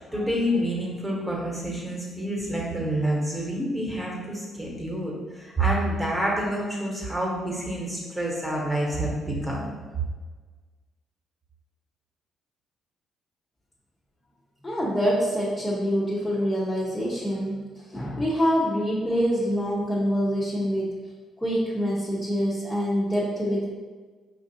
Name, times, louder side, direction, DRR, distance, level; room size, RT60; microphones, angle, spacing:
voice 1, 0.1-9.7, right 1 dB, 10° right, -3 dB, 1.2 m, -28 dB
voice 2, 14.6-21.0 21.4-23.7, equal, 15° left, -8 dB, 0.9 m, -25 dB
5.1 x 2.5 x 2.8 m, 1.4 s
cardioid pair, 90°, 0 cm